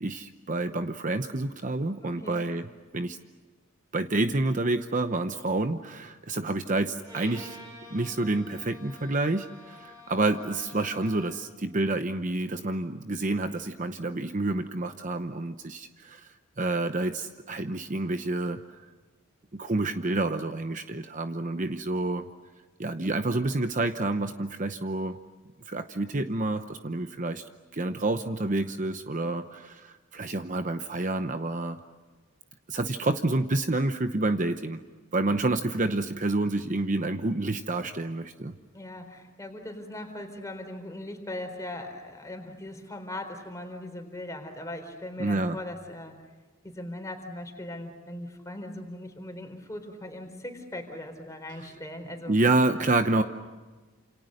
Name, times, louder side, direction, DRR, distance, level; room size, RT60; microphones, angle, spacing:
voice 1, 0.0-2.7 2.9-3.2 3.9-7.6 7.9-16.3 16.6-18.6 19.5-22.3 22.8-25.2 25.7-27.4 27.7-31.8 32.7-34.8 35.1-38.5 45.2-45.6 52.3-53.2, right 2 dB, 35° right, 8 dB, 0.8 m, -28 dB
voice 2, 2.0-2.4 38.7-46.1 46.6-52.4, left 1 dB, 15° left, 5 dB, 4.1 m, -39 dB
Bowed string instrument, 7.0-11.6, left 1 dB, 15° right, 6.7 m, -48 dB
29.5 x 28.0 x 6.6 m, 1.3 s
head